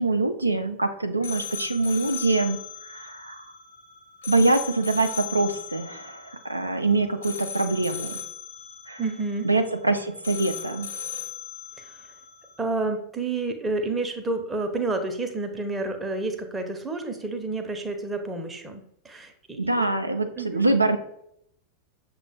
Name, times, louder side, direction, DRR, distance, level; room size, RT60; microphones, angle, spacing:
voice 1, 0.0-3.4 4.3-8.2 8.9-9.0 9.4-10.9 19.6-21.0, right 2 dB, 85° right, 6 dB, 0.4 m, -24 dB
sound 1, 1.2-12.6, left 7 dB, 65° left, 1.0 m, -38 dB
voice 2, 9.0-9.5 11.8-12.1 12.6-19.9 20.4-20.7, right 3 dB, 10° right, 5 dB, 0.6 m, -30 dB
6.4 x 2.2 x 3.3 m, 0.72 s
figure-of-eight pair, 90°, 0 cm